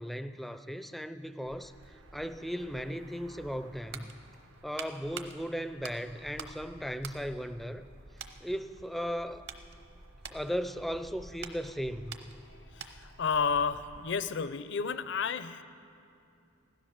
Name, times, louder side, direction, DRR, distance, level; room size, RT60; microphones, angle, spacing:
voice 1, 0.0-1.7 2.1-4.1 4.6-7.8 8.4-9.5 10.3-12.3, equal, ahead, 11 dB, 0.4 m, -36 dB
sound 1, 1.4-14.1, right 1 dB, 80° right, 1.1 m, -54 dB
sound 2, 3.8-6.6 6.9-7.9 8.2-8.4 9.0-13.2 13.5-13.7, right 6 dB, 55° right, 1.0 m, -47 dB
voice 2, 12.5-15.6, left 6 dB, 60° left, 13 dB, 0.6 m, -32 dB
16.0 x 13.0 x 6.5 m, 2.7 s
head